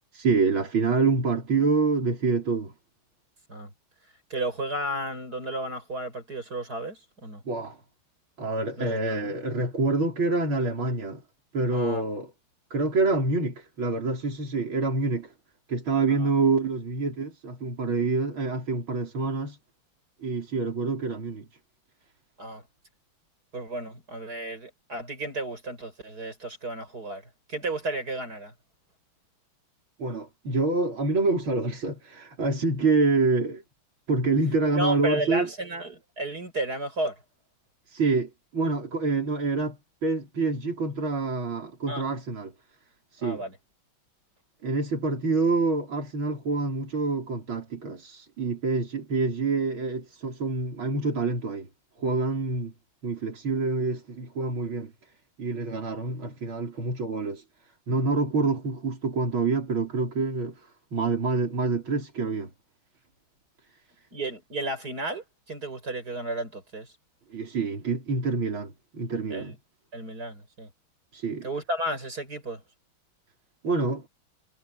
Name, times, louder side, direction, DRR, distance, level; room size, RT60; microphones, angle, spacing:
voice 1, 0.1-2.7 7.5-7.8 8.4-11.2 11.5-12.3 12.7-15.3 15.7-19.6 20.2-21.5 30.0-33.6 34.1-35.5 37.9-42.5 43.1-43.4 44.6-51.7 52.0-52.7 53.0-54.9 55.4-57.4 57.9-62.5 67.3-69.6 71.1-71.5 73.6-74.1, right 3 dB, 75° right, 5.3 m, -27 dB
voice 2, 4.3-7.4 8.8-9.4 11.7-12.1 16.1-16.3 22.4-22.6 23.5-27.2 27.5-28.5 34.7-37.2 41.9-42.0 43.2-43.6 64.1-66.9 69.3-69.6 69.9-70.7 71.4-72.6, right 1 dB, 50° right, 6.9 m, -33 dB
omnidirectional pair, 2.2 m